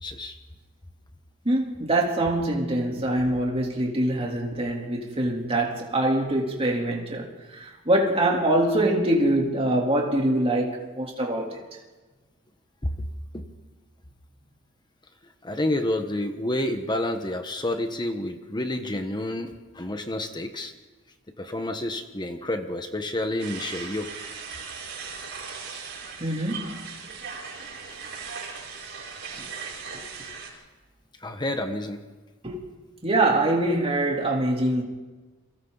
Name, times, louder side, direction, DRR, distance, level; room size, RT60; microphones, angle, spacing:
voice 1, 0.0-0.4 12.8-12.9 13.3-13.5 15.4-20.7 21.4-24.1 31.2-32.0, left 1 dB, 20° left, 1.3 m, -29 dB
voice 2, 1.5-11.6 26.2-26.9 29.3-29.5 32.4-32.6 33.0-34.8, right 1 dB, 30° right, 3.4 m, -24 dB
sound 1, 23.4-30.5, right 5 dB, 60° right, 6.8 m, -38 dB
30.0 x 24.0 x 4.1 m
head